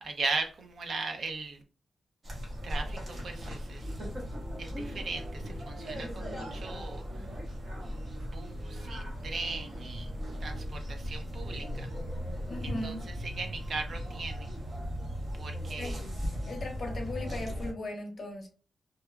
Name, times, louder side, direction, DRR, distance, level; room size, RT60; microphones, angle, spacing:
voice 1, 0.0-1.6 2.6-4.0 4.6-7.2 8.2-10.1 10.4-11.9 12.8-12.9 13.2-14.5 15.3-16.0, right 3 dB, 55° right, 0.5 m, -38 dB
sound 1, 2.2-17.7, equal, 35° right, 0.9 m, -37 dB
voice 2, 12.5-13.0 15.8-16.0 16.5-18.5, left 2 dB, 45° left, 0.7 m, -38 dB
2.7 x 2.1 x 2.3 m
wide cardioid pair, 160°, 0 cm